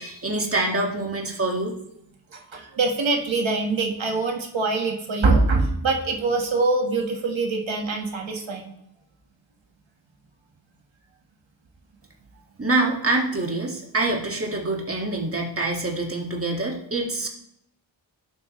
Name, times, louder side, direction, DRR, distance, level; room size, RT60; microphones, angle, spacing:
voice 1, 0.0-1.7 12.6-17.3, right 2 dB, 30° right, 0 dB, 2.0 m, -25 dB
voice 2, 2.3-8.7, right 3 dB, 80° right, 1 dB, 1.7 m, -24 dB
16.0 x 8.3 x 3.2 m, 0.77 s
wide cardioid pair, 90°, 45 cm